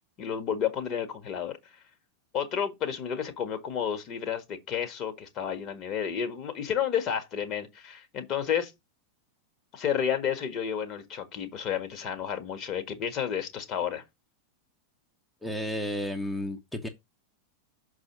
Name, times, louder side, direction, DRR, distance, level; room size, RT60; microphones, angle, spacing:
voice 1, 0.2-1.6 2.3-8.7 9.7-14.0, left 8 dB, 35° left, 1.7 m, -31 dB
voice 2, 15.4-16.9, left 1 dB, ahead, 1.0 m, -32 dB
6.2 x 4.9 x 6.2 m
figure-of-eight pair, 90°, 0 cm